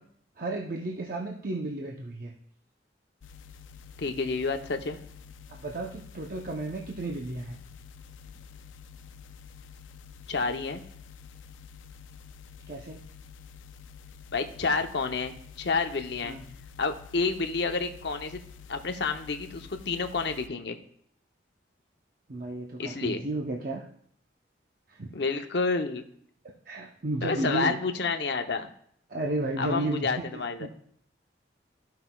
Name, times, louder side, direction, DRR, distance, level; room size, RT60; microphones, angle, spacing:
voice 1, 0.4-2.3 5.5-7.6 12.7-13.0 16.2-16.4 22.3-23.9 24.9-25.4 26.7-27.8 29.1-30.7, right 2 dB, 45° right, 0 dB, 0.7 m, -33 dB
sound 1, 3.2-20.5, left 6 dB, 85° left, 0.4 m, -49 dB
voice 2, 4.0-5.0 10.3-10.8 14.3-16.4 16.8-18.4 18.7-20.8 22.8-23.2 25.1-26.0 27.2-28.7 29.6-30.7, left 4 dB, 60° left, 6 dB, 0.7 m, -29 dB
14.0 x 5.6 x 2.3 m, 0.66 s
head